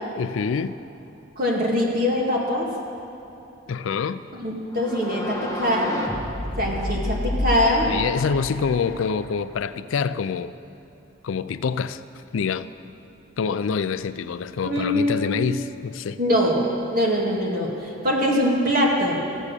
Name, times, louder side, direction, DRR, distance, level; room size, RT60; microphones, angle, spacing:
voice 1, 0.2-0.8 3.7-4.2 6.8-6.9 7.9-10.5 11.2-12.0 12.3-12.7 13.4-16.2, left 6 dB, 80° left, 14 dB, 0.4 m, -26 dB
voice 2, 1.4-2.7 4.3-6.0 6.6-7.9 14.6-15.5 16.2-19.2, left 1 dB, 45° right, -2 dB, 2.0 m, -23 dB
sound 1, 4.7-9.6, left 1 dB, 15° left, 1.2 m, -30 dB
15.0 x 7.3 x 6.7 m, 3.0 s
head